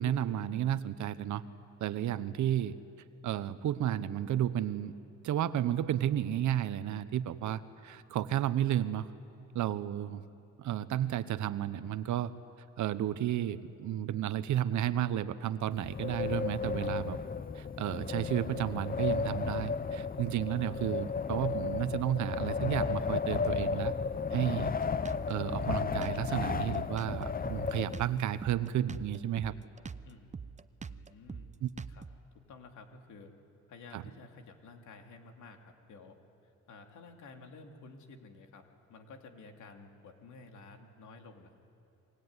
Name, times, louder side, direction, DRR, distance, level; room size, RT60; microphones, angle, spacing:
voice 1, 0.0-1.4 1.8-2.8 3.2-4.9 5.2-9.1 9.5-10.2 10.6-12.3 12.8-17.2 17.5-23.9 24.3-24.7 25.3-29.5 31.6-31.7 33.9-34.0, right 11 dB, 75° right, 14 dB, 1.0 m, -32 dB
Wind, 15.7-28.4, left 5 dB, 30° left, 0.8 m, -34 dB
Drum kit, 24.6-32.2, right 5 dB, 25° right, 0.7 m, -44 dB
voice 2, 30.8-31.5 31.9-32.0 32.5-33.3 33.7-35.6 35.9-36.2 36.4-38.6 38.9-41.5, left 3 dB, 75° left, 4 dB, 3.0 m, -52 dB
25.0 x 22.5 x 9.7 m, 2.8 s
cardioid pair, 90°, 30 cm